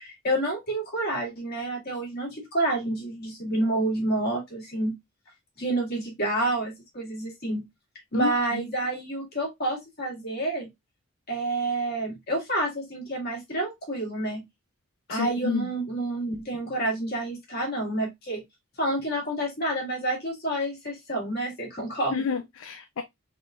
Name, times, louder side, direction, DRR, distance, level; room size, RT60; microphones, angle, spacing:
voice 1, 0.0-4.9 5.6-7.7 8.1-10.7 11.3-14.4 15.1-18.4 18.8-22.2, right 1 dB, 45° left, 1.9 m, -29 dB
voice 2, 8.1-8.7 15.1-15.7 22.1-23.0, left 6 dB, 60° left, 0.4 m, -30 dB
4.1 x 3.7 x 2.4 m
head